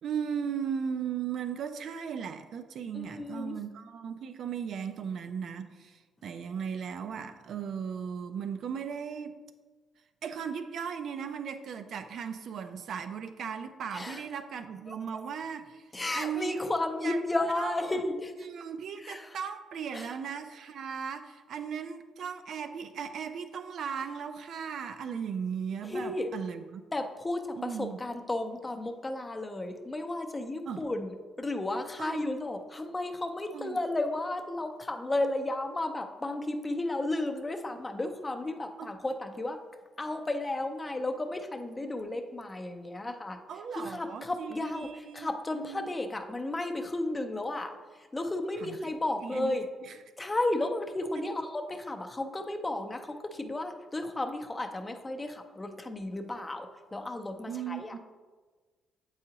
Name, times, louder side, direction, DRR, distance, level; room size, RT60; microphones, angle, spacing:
voice 1, 0.0-9.4 10.2-15.8 16.1-16.6 17.0-17.2 17.6-17.8 18.4-26.8 27.6-28.0 30.7-30.8 32.0-32.2 33.5-33.8 38.8-38.9 43.5-45.3 45.5-45.9 48.6-48.8 49.2-49.6 51.2-51.4 57.5-58.0, right 7 dB, 65° right, 9 dB, 0.4 m, -37 dB
voice 2, 2.9-3.6 13.9-14.2 14.9-15.0 15.9-18.3 19.0-19.4 19.9-20.1 25.8-26.3 26.9-39.6 40.0-43.4 43.7-49.7 50.2-58.0, left 2 dB, 20° left, 5 dB, 0.6 m, -33 dB
7.7 x 4.8 x 2.9 m, 1.4 s
cardioid pair, 90°, 0 cm